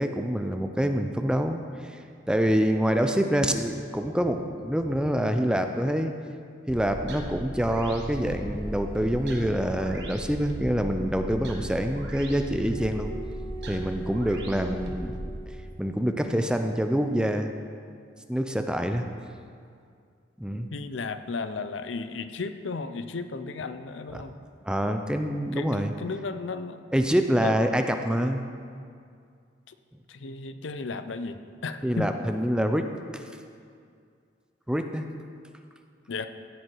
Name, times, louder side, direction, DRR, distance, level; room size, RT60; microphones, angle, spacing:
voice 1, 0.0-2.0 2.3-6.1 6.7-13.1 13.6-15.2 15.8-17.5 18.3-19.1 20.4-20.7 24.1-24.2 24.6-25.9 26.9-28.4 31.8-32.9 33.1-33.2 34.7-35.1, equal, 5° right, 6 dB, 0.5 m, -26 dB
sound 1, 6.7-15.4, right 1 dB, 65° right, 1.4 m, -37 dB
sound 2, 8.1-11.6 12.7-15.8 16.9-17.3, right 2 dB, 25° left, 1.5 m, -45 dB
voice 2, 20.7-24.4 25.5-26.8 27.4-27.5 29.7-29.8 30.1-32.1 36.1-36.3, left 4 dB, 85° left, 10 dB, 0.6 m, -34 dB
15.5 x 7.9 x 4.6 m, 2.3 s
head